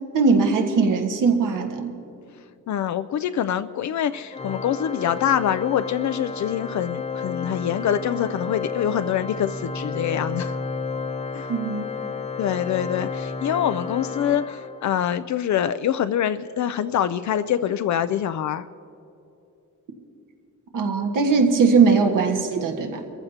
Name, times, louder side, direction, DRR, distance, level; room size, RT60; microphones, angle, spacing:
voice 1, 0.1-1.9 11.5-12.1 20.7-23.0, right 4 dB, 80° right, 2 dB, 1.6 m, -20 dB
voice 2, 2.7-10.5 11.3-11.5 12.4-18.6, left 10 dB, 65° left, 11 dB, 0.4 m, -25 dB
Organ, 4.3-15.1, left 5 dB, 20° left, 0.8 m, -32 dB
23.5 x 15.0 x 2.8 m, 2.7 s
wide cardioid pair, 145°, 31 cm